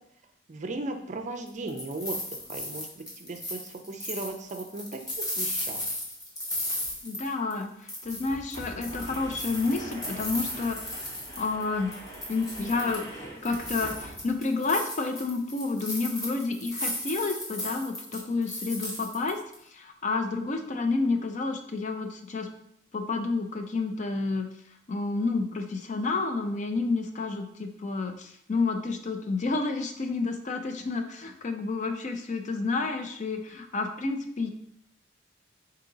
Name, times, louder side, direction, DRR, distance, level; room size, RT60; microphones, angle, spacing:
voice 1, 0.5-2.2 2.5-5.8, right 2 dB, 40° right, 5 dB, 0.4 m, -37 dB
sound 1, 1.5-7.6 7.9-11.6 11.9-13.1 13.4-19.5, left 1 dB, 20° left, 1.0 m, -36 dB
sound 2, 6.8-6.9 7.2-7.3 8.0-14.5, right 1 dB, 75° left, 1.4 m, -43 dB
voice 2, 7.0-11.0 11.4-11.9 12.3-22.5 22.9-24.5 24.9-34.5, left 3 dB, 40° left, 5 dB, 0.4 m, -30 dB
4.9 x 2.8 x 3.9 m, 0.73 s
head